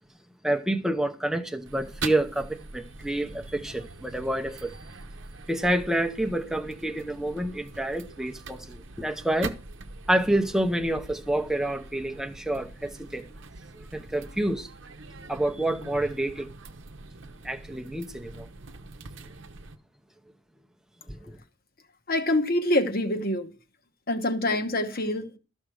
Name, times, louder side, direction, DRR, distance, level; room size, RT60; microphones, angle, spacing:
voice 1, 0.4-4.7 5.5-9.5 10.1-13.3 13.8-14.7 15.3-16.5 17.4-18.5 21.1-21.4, right 1 dB, ahead, 0.7 m, -28 dB
sound 1, 1.6-19.8, right 3 dB, 55° right, 0.8 m, -43 dB
voice 2, 22.1-23.5 24.1-25.4, left 1 dB, 45° left, 1.1 m, -25 dB
13.0 x 6.3 x 4.9 m
head